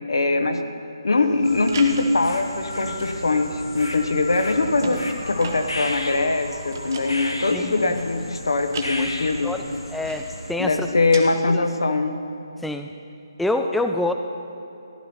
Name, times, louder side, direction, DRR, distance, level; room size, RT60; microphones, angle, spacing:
voice 1, 0.1-0.7 1.0-9.5 10.6-12.2, left 3 dB, 70° left, 7 dB, 1.0 m, -22 dB
sound 1, 1.2-11.2, right 4 dB, 40° right, 1.2 m, -40 dB
sound 2, 1.4-10.5, left 1 dB, 90° left, 1.4 m, -34 dB
voice 2, 9.9-10.9 11.5-11.6 12.6-12.9 13.4-14.1, left 2 dB, ahead, 5 dB, 0.3 m, -26 dB
15.0 x 12.0 x 4.3 m, 2.8 s
figure-of-eight pair, 145°, 2 cm